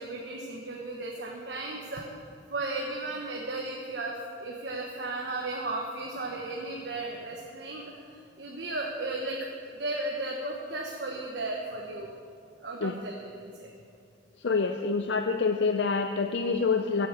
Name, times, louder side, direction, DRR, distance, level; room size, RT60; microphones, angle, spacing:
voice 1, 0.0-2.0 2.5-9.4 9.7-12.1 12.6-13.7, right 2 dB, 65° right, -1 dB, 1.3 m, -35 dB
voice 2, 14.4-17.1, left 4 dB, 65° left, 6 dB, 0.5 m, -27 dB
14.5 x 8.5 x 6.9 m, 2.3 s
head